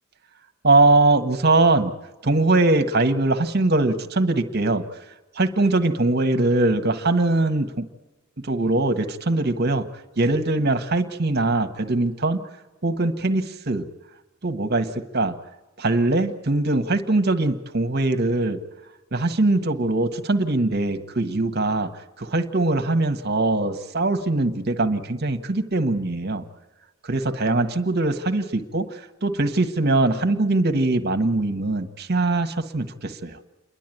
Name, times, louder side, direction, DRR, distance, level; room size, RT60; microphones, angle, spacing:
voice 1, 0.6-1.9 2.2-4.8 5.3-7.9 8.4-9.9 10.2-12.4 12.8-13.9 14.4-15.3 15.8-18.6 19.1-21.9 22.2-26.4 27.0-33.4, right 2 dB, 50° right, 7 dB, 1.4 m, -22 dB
28.5 x 11.5 x 9.2 m, 1.1 s
head